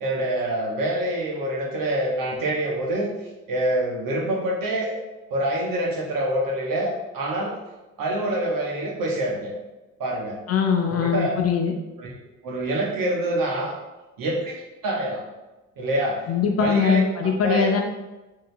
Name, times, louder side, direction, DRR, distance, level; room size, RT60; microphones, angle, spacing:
voice 1, 0.0-3.1 3.5-5.0 5.3-7.6 8.0-9.5 10.0-10.3 10.9-11.4 12.0-12.1 12.4-13.7 14.2-15.2 15.8-16.2 16.6-17.7, right 1 dB, 55° right, -2 dB, 1.1 m, -26 dB
voice 2, 10.5-11.7 16.3-17.8, left 6 dB, 40° left, 3 dB, 0.5 m, -21 dB
3.4 x 2.7 x 2.6 m, 1.1 s
hypercardioid pair, 55°, 40 cm